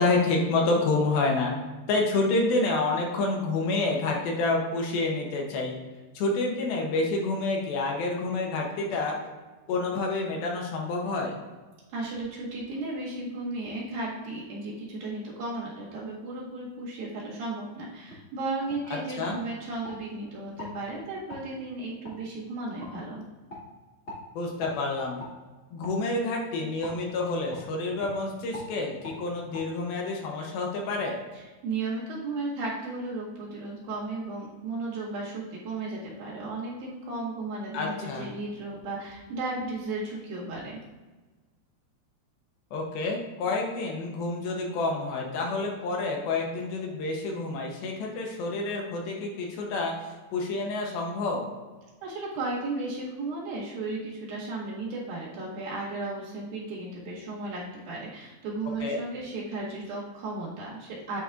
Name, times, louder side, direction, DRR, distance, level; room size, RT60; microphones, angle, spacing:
voice 1, 0.0-1.5 1.9-5.7 6.1-9.2 9.7-11.4 18.9-19.4 24.4-25.2 25.7-31.2 37.7-38.3 42.7-49.9 50.3-51.5 58.8-59.0, left 3 dB, 75° left, 0 dB, 2.6 m, -28 dB
voice 2, 11.9-23.2 31.6-40.8 52.0-61.2, right 2 dB, 70° right, -6 dB, 3.4 m, -35 dB
sound 1, 18.1-18.2 18.7-18.8 19.2-20.0 20.5-20.7 21.3-21.4 22.0-22.2 22.8-22.9 23.5-23.6 24.1-24.2 24.6-24.8 25.2-25.3 25.8-26.0 26.8-27.0 27.5-27.6 28.0-28.1 28.5-28.7 29.0-29.2 29.5-29.6, left 1 dB, 40° left, 1.1 m, -42 dB
9.2 x 4.1 x 2.4 m, 1.2 s
omnidirectional pair, 4.5 m